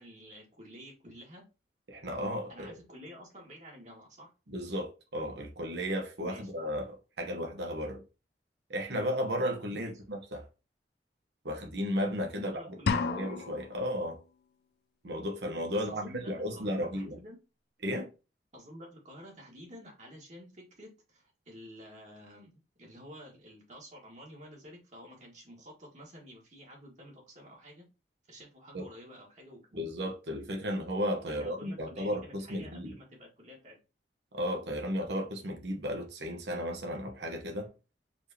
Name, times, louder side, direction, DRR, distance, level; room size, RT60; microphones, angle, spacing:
voice 1, 0.0-1.5 2.5-4.3 6.2-6.5 9.7-10.0 12.4-13.2 15.7-17.4 18.5-27.9 28.3-29.8 31.3-33.8, equal, 45° right, 1.6 m, -50 dB
voice 2, 1.9-2.7 4.5-8.0 8.7-10.5 11.4-12.6 13.0-14.2 15.0-17.2 17.8-18.1 28.7-28.8 29.7-32.9 34.3-37.7, equal, 75° right, 1.1 m, -34 dB
sound 1, 12.9-13.8, left 4 dB, 65° left, 0.4 m, -31 dB
4.5 x 3.3 x 2.8 m
head